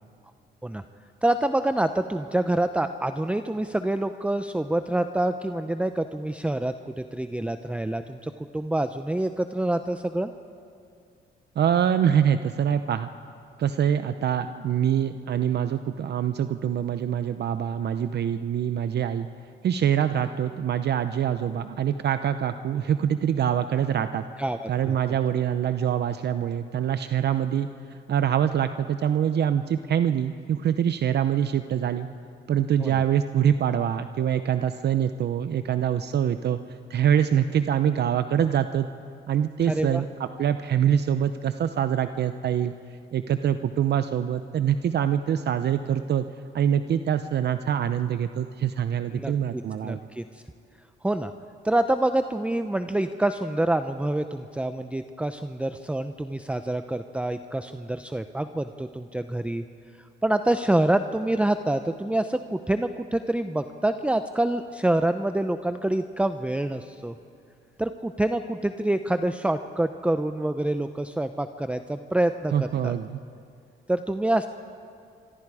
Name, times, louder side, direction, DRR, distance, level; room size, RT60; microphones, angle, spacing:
voice 1, 1.2-10.3 24.4-25.0 32.8-33.0 39.7-40.0 49.1-50.4 51.0-51.3 51.6-59.6 60.2-67.2 67.8-72.9 73.9-74.5, right 1 dB, 5° right, 9 dB, 0.7 m, -26 dB
voice 2, 11.6-13.1 13.6-19.3 19.6-24.2 24.7-32.1 32.5-38.9 39.3-42.7 43.1-46.2 46.5-50.1 72.5-73.2, right 9 dB, 55° right, 10 dB, 0.7 m, -25 dB
26.5 x 25.0 x 4.9 m, 2.4 s
cardioid pair, 90°, 20 cm